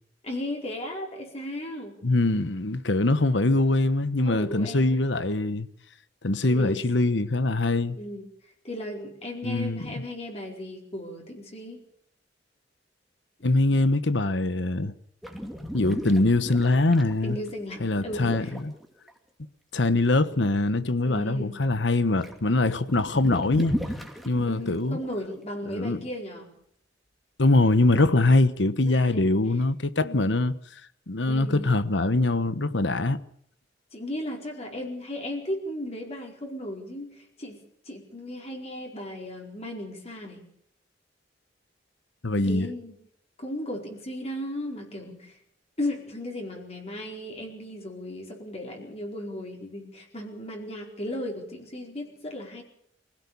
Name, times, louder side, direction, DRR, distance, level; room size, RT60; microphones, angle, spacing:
voice 1, 0.2-2.0 4.2-5.1 6.5-6.8 7.9-8.3 8.6-11.8 17.2-18.6 21.0-21.6 24.5-26.5 28.8-29.2 30.0-30.4 31.3-31.8 33.9-37.6 37.8-40.4 42.4-43.0 43.4-45.4 45.8-52.6, left 1 dB, 35° left, 4.6 m, -36 dB
voice 2, 2.0-5.7 6.2-8.0 9.4-9.9 13.4-14.9 15.7-17.4 17.8-18.7 19.7-23.7 24.2-25.0 25.7-26.0 27.4-30.5 31.1-33.2 42.2-42.7, left 2 dB, 70° left, 1.2 m, -23 dB
sound 1, 15.2-19.1 21.7-21.9 22.1-25.1 27.9-28.1, equal, ahead, 2.5 m, -36 dB
24.5 x 16.5 x 7.1 m
head